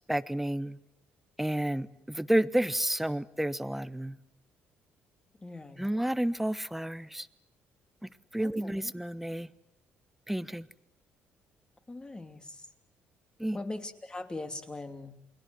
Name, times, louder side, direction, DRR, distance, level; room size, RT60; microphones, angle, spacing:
voice 1, 0.1-0.8 1.4-4.2 5.8-7.3 8.3-9.5 10.3-10.7 13.4-13.6, right 1 dB, 5° right, 15 dB, 1.1 m, -30 dB
voice 2, 5.4-5.8 8.4-8.9 11.9-12.6 13.5-15.1, left 2 dB, 20° left, 7 dB, 3.0 m, -40 dB
29.0 x 21.0 x 7.9 m, 0.77 s
cardioid pair, 85°, 5 cm